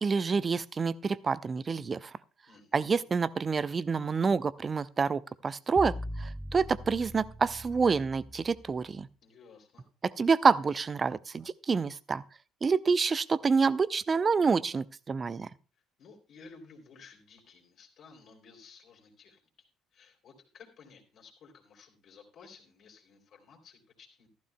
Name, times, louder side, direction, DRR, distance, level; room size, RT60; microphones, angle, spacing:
voice 1, 0.0-2.1 2.7-9.1 10.0-12.2 12.6-15.5, right 5 dB, 30° right, 19 dB, 0.5 m, -27 dB
voice 2, 2.5-3.0 9.2-9.9 16.0-19.7 19.9-24.3, left 5 dB, 50° left, 2 dB, 3.0 m, -55 dB
sound 1, 5.8-8.8, equal, 5° right, 0.8 m, -41 dB
14.5 x 12.5 x 2.2 m, 0.34 s
figure-of-eight pair, 55°, 0 cm